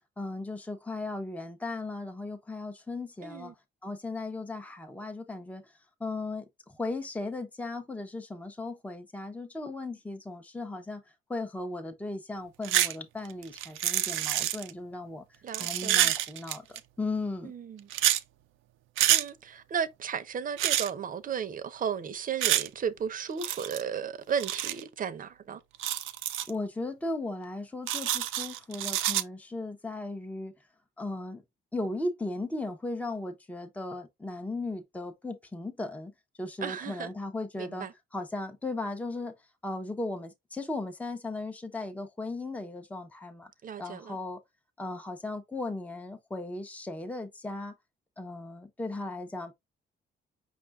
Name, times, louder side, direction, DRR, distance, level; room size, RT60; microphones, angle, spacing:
voice 1, 0.2-3.5 3.8-5.6 6.0-11.0 11.3-15.2 15.6-17.5 26.5-30.5 31.0-31.4 31.7-36.1 36.4-37.9 38.1-39.3 39.6-43.5 43.8-44.4 44.8-47.7 48.2-49.5, left 2 dB, 5° left, 0.7 m, -36 dB
voice 2, 3.2-3.5 15.4-16.1 17.4-17.9 19.1-25.6 36.6-37.1 37.6-37.9 43.6-44.2, right 7 dB, 45° right, 0.7 m, -34 dB
sound 1, 12.6-12.9 13.2-14.7 15.5-16.8 17.9-18.2 19.0-19.2 20.6-20.9 22.4-22.7 23.4-23.8 24.4-24.8 25.7-26.5 27.9-29.2, right 13 dB, 85° right, 0.5 m, -27 dB
5.3 x 2.4 x 3.5 m
cardioid pair, 90°, 20 cm